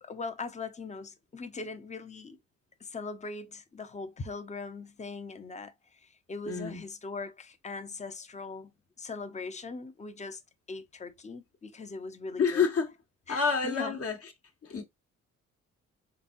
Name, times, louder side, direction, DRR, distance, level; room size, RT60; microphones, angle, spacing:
voice 1, 0.0-2.4 2.8-8.7 9.0-10.4 10.7-12.7 13.3-14.0, left 4 dB, 25° left, 0.8 m, -40 dB
voice 2, 6.5-6.8 12.4-12.9 13.3-14.3 14.6-14.8, left 5 dB, 50° left, 1.4 m, -28 dB
4.0 x 3.6 x 2.6 m
cardioid pair, 90°, 30 cm